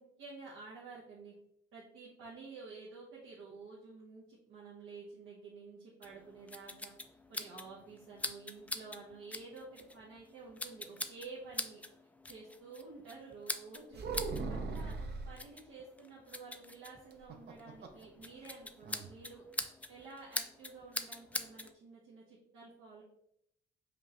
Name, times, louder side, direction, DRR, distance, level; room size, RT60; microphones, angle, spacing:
voice 1, 0.0-1.3 1.7-6.9 7.3-11.8 12.2-14.1 14.5-19.4 19.9-23.0, right 4 dB, 80° right, -6 dB, 1.0 m, -51 dB
sound 1, 6.0-21.7, left 2 dB, 5° left, 0.3 m, -44 dB
sound 2, 13.9-15.4 17.1-18.1 18.4-18.5 18.8-19.1, right 4 dB, 55° right, 0.7 m, -39 dB
5.1 x 2.5 x 2.9 m, 0.74 s
cardioid pair, 90°, 20 cm